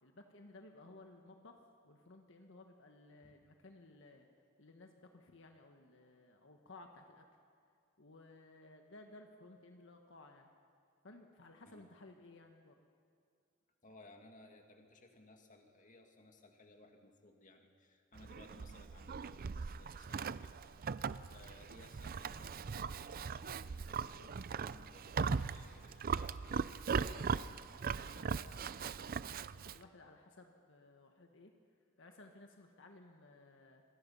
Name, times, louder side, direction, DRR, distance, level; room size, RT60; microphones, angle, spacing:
voice 1, 0.0-4.3 4.6-7.2 8.0-10.5 11.0-12.7 27.1-29.3 29.5-31.5 32.0-33.8, left 2 dB, 65° left, 3 dB, 1.5 m, -58 dB
voice 2, 13.8-20.5 21.1-27.1, left 2 dB, 40° left, 3 dB, 2.1 m, -61 dB
Livestock farm animals working animals, 18.1-29.8, right 5 dB, 45° right, 0.5 m, -39 dB
27.0 x 20.5 x 5.6 m, 2.3 s
head